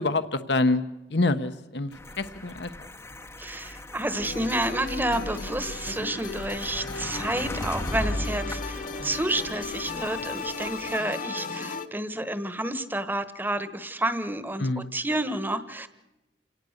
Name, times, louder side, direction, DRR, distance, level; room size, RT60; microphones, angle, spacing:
voice 1, 0.0-2.7 14.6-15.0, left 2 dB, 65° left, 10 dB, 1.1 m, -26 dB
sound 1, 1.9-11.0, left 1 dB, 15° left, 0.8 m, -37 dB
voice 2, 3.4-15.9, right 1 dB, 10° right, 12 dB, 1.2 m, -30 dB
sound 2, 4.2-11.9, left 4 dB, 45° left, 1.4 m, -36 dB
28.5 x 18.5 x 6.6 m, 0.98 s
head